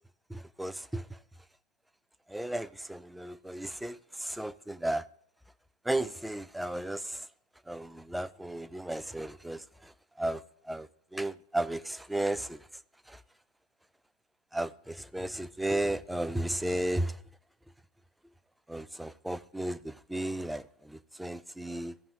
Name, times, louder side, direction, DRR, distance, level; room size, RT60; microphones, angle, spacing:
voice 1, 0.3-1.2 2.3-5.0 5.8-7.3 7.7-9.9 10.2-12.7 13.1-13.2 14.5-17.2 18.7-21.9, right 1 dB, 5° right, 0.4 m, -34 dB
15.0 x 5.3 x 3.0 m
figure-of-eight pair, 90°, 0 cm